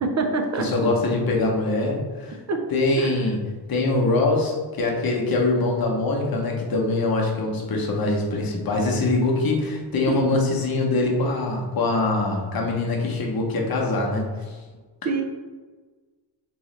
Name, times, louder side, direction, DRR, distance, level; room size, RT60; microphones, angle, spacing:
voice 1, 0.0-0.7 2.5-2.6 3.0-3.1 10.1-10.5 15.0-15.2, right 3 dB, 40° right, 4 dB, 0.4 m, -25 dB
voice 2, 0.6-2.4 2.7-3.4 3.7-14.5, left 2 dB, 50° left, 0 dB, 0.8 m, -23 dB
3.8 x 3.1 x 3.1 m, 1.4 s
wide cardioid pair, 170°, 46 cm